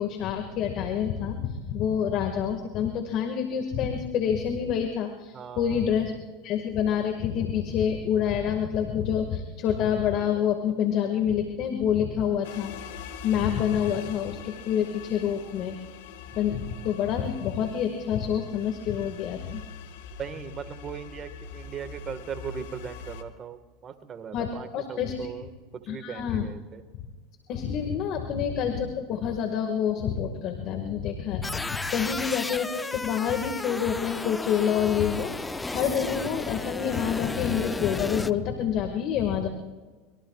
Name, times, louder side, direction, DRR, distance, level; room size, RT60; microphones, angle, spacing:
voice 1, 0.0-6.1 6.4-12.8 13.2-15.8 16.4-19.6 24.3-24.5 24.7-25.3 25.9-26.5 27.5-35.3 35.7-39.5, left 8 dB, 55° left, 5 dB, 1.8 m, -27 dB
voice 2, 5.3-5.9 20.2-26.8 28.1-28.3, right 7 dB, 35° right, 9 dB, 1.6 m, -39 dB
sound 1, 12.4-23.2, left 6 dB, 75° left, 1.5 m, -43 dB
sound 2, 31.4-38.3, left 3 dB, 10° left, 0.6 m, -33 dB
25.0 x 23.0 x 2.4 m, 1.4 s
supercardioid pair, 100°, 0 cm